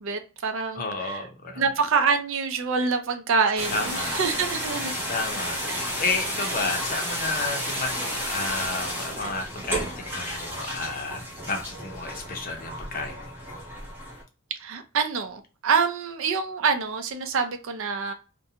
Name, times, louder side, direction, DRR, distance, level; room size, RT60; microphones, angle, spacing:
voice 1, 0.0-1.2 1.6-4.9 5.7-5.8 14.6-18.1, right 5 dB, 65° right, 7 dB, 0.5 m, -26 dB
voice 2, 0.7-1.6 3.7-4.2 5.1-13.3, left 3 dB, 45° left, 3 dB, 0.6 m, -31 dB
sound 1, 3.6-14.2, equal, 10° right, 0.7 m, -32 dB
2.5 x 2.2 x 2.7 m, 0.32 s
head